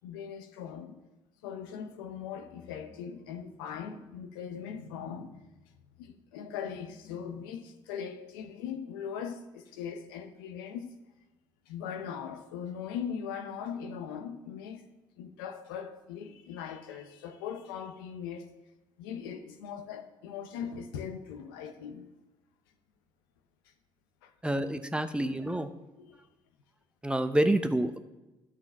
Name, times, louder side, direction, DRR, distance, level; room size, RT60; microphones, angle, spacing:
voice 1, 0.0-1.0 1.4-5.5 6.0-10.9 11.7-14.8 15.2-18.5 19.0-22.1 24.2-24.3 26.0-26.2, left 7 dB, 90° left, 0.6 m, -40 dB
voice 2, 24.4-25.7 27.0-28.0, right 1 dB, 10° right, 0.7 m, -28 dB
12.0 x 4.4 x 5.9 m
hypercardioid pair, 55°, 11 cm